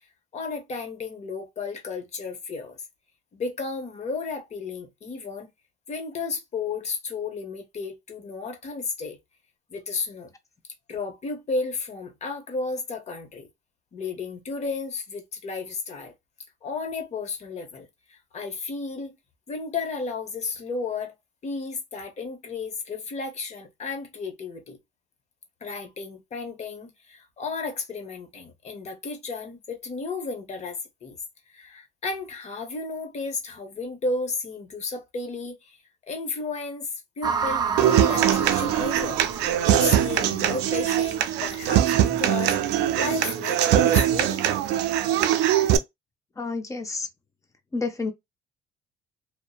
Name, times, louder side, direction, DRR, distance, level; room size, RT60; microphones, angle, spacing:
voice 1, 0.3-2.8 3.3-5.5 5.9-9.2 9.7-10.3 10.9-13.5 13.9-16.1 16.6-19.1 19.5-21.1 21.4-24.8 25.6-31.2 31.5-35.8 36.1-44.6, left 4 dB, 40° left, 0.9 m, -33 dB
sound 1, 37.2-40.5, right 6 dB, 25° right, 0.4 m, -30 dB
Human voice / Acoustic guitar, 37.8-45.8, right 11 dB, 90° right, 0.4 m, -22 dB
voice 2, 46.4-47.1 47.7-48.1, left 3 dB, 20° left, 0.7 m, -29 dB
2.6 x 2.1 x 2.3 m
cardioid pair, 110°, 17 cm